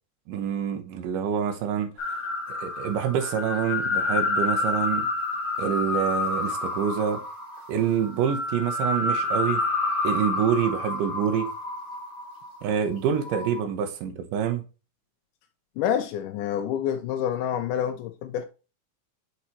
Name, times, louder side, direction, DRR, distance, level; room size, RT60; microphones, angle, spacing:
voice 1, 0.3-2.2 2.5-5.1 5.6-7.2 7.7-9.6 10.0-11.5 12.6-14.6, right 8 dB, 90° right, 2.6 m, -26 dB
sound 1, 2.0-12.6 13.1-13.6, left 3 dB, 35° left, 2.5 m, -29 dB
voice 2, 15.8-18.5, left 9 dB, 85° left, 2.2 m, -27 dB
7.0 x 4.8 x 2.9 m
omnidirectional pair, 3.7 m